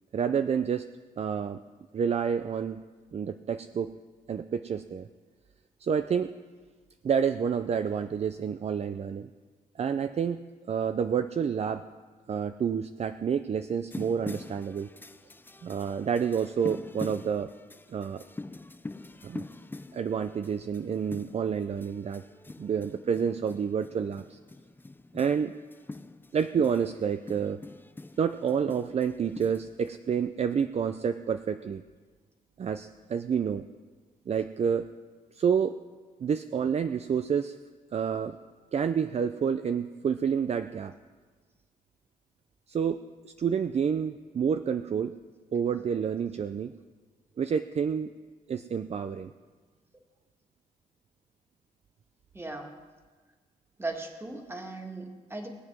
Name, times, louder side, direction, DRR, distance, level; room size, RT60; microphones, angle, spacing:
voice 1, 0.1-0.9 1.2-1.6 1.9-2.8 3.1-3.9 4.3-5.1 5.8-6.3 7.0-9.3 9.8-10.4 10.7-11.8 12.3-14.9 15.6-17.5 17.9-18.2 19.2-19.4 19.9-22.2 22.6-24.4 25.1-25.5 26.3-27.6 28.2-31.8 32.6-33.6 34.3-34.9 35.3-35.8 36.2-37.6 37.9-38.4 38.7-40.9 42.7-45.1 45.5-46.7 47.4-48.1 48.5-49.3, right 7 dB, 45° right, 10 dB, 0.5 m, -29 dB
sound 1, 13.9-29.9, left 2 dB, 15° left, 0.5 m, -44 dB
voice 2, 52.3-52.8 53.8-55.5, right 2 dB, 15° right, 3 dB, 2.0 m, -37 dB
20.5 x 7.4 x 6.1 m, 1.4 s
cardioid pair, 85°, 15 cm